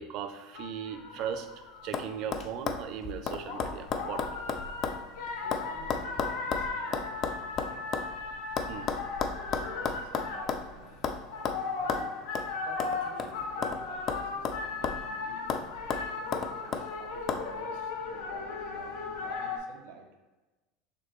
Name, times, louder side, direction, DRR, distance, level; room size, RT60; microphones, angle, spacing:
voice 1, 0.0-1.5 1.8-4.2 8.7-8.9, right 8 dB, 45° right, 8 dB, 0.4 m, -37 dB
sound 1, 0.5-2.1 3.0-19.6, left 4 dB, 70° left, 0.7 m, -37 dB
sound 2, 1.2-1.6 1.9-2.1 2.3-5.0 5.3-8.1 8.6-10.7 11.0-11.2 11.5-11.6 11.9-12.0 12.4-12.5 12.8-13.8 14.1-15.1 15.5-15.6 15.9-16.9 17.3-17.4, left 6 dB, 30° left, 0.3 m, -33 dB
voice 2, 5.4-7.1 7.7-7.9 8.8-9.2 9.6-11.0 11.3-12.2 12.5-20.1, right 5 dB, 85° right, 4 dB, 0.8 m, -52 dB
6.7 x 2.6 x 3.0 m, 1.2 s
cardioid pair, 165°, 0 cm